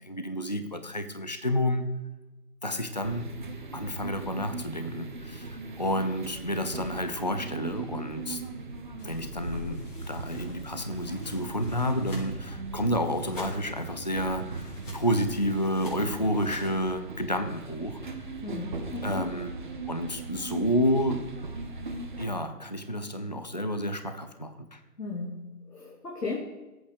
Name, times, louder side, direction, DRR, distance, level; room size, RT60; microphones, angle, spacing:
voice 1, 0.1-1.9 2.6-3.3 3.7-8.4 9.0-18.0 19.0-19.5 19.9-21.3 22.2-24.8, equal, 30° left, 9 dB, 0.6 m, -30 dB
sound 1, 3.0-22.3, right 3 dB, 30° right, 1.2 m, -39 dB
sound 2, 9.0-16.9, left 1 dB, 55° left, 5.4 m, -44 dB
voice 2, 18.4-19.3 25.0-26.4, left 3 dB, 70° left, -3 dB, 3.2 m, -36 dB
19.5 x 8.7 x 5.0 m, 1.1 s
figure-of-eight pair, 155°, 47 cm